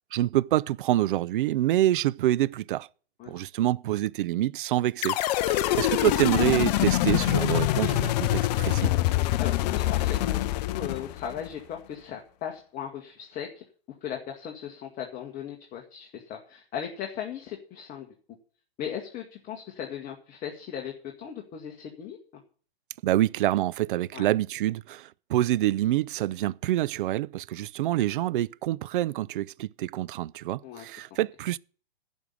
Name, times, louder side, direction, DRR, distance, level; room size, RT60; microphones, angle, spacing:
voice 1, 0.1-2.9 3.3-5.2 5.5-8.9 23.0-31.6, right 14 dB, 55° right, 0.4 m, -26 dB
sound 1, 5.0-11.5, left 15 dB, 45° left, 0.6 m, -25 dB
voice 2, 9.4-13.6 14.0-18.1 18.8-22.4 24.1-24.3 30.6-30.9, left 9 dB, 25° left, 1.6 m, -38 dB
11.5 x 5.5 x 8.7 m
hypercardioid pair, 125°, 30 cm